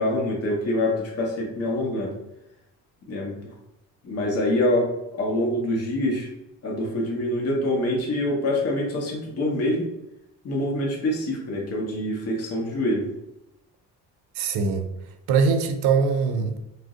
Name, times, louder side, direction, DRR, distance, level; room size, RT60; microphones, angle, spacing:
voice 1, 0.0-2.1 3.1-3.3 4.0-6.3 6.6-9.9 10.4-13.1, left 1 dB, 40° left, -2 dB, 0.8 m, -25 dB
voice 2, 14.3-14.9 15.3-16.6, right 5 dB, 70° right, 7 dB, 0.5 m, -22 dB
2.5 x 2.0 x 3.5 m, 0.90 s
cardioid pair, 120°, 39 cm